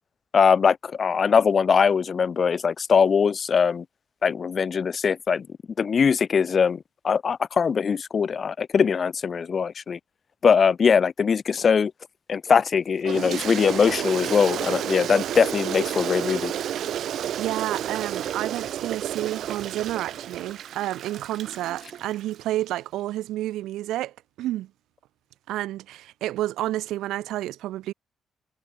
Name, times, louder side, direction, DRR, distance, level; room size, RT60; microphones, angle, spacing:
voice 1, 0.3-3.8 4.2-5.5 5.8-10.0 10.4-11.9 12.3-16.5, left 6 dB, 45° left, 5.0 m, -21 dB
Toilet flush, 13.1-22.4, right 10 dB, 70° right, 2.3 m, -31 dB
voice 2, 17.4-24.7 25.5-27.9, right 14 dB, 85° right, 6.0 m, -30 dB
cardioid pair, 90°, 0 cm